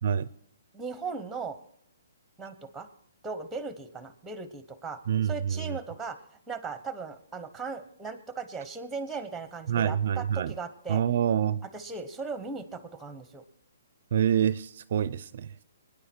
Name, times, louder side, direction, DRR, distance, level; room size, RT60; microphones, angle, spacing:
voice 1, 0.7-1.6 2.4-2.9 3.2-5.0 5.3-6.2 6.5-11.0 11.7-13.4, right 4 dB, 5° right, 11 dB, 1.0 m, -37 dB
voice 2, 5.1-5.8 9.7-10.5 10.9-11.6 14.1-15.5, right 9 dB, 55° right, 18 dB, 0.4 m, -26 dB
23.5 x 10.0 x 4.4 m, 0.71 s
hypercardioid pair, 160°, 0 cm